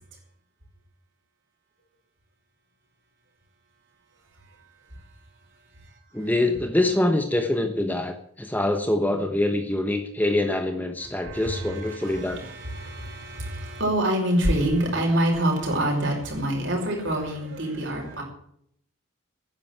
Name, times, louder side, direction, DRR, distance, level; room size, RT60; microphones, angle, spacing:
voice 1, 6.1-12.4, left 1 dB, 10° left, 6 dB, 1.1 m, -25 dB
voice 2, 11.2-18.2, right 1 dB, 55° right, 0 dB, 6.1 m, -26 dB
11.0 x 10.5 x 9.1 m, 0.67 s
head